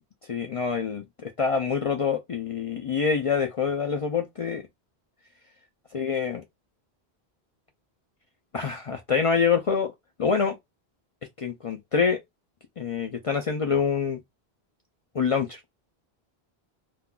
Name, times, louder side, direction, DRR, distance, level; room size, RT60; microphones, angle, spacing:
voice 1, 0.3-4.6 5.9-6.4 8.5-9.9 10.2-10.6 11.4-12.2 12.8-14.2 15.1-15.6, left 6 dB, 55° left, 0.4 m, -26 dB
3.6 x 2.3 x 2.2 m
omnidirectional pair, 1.1 m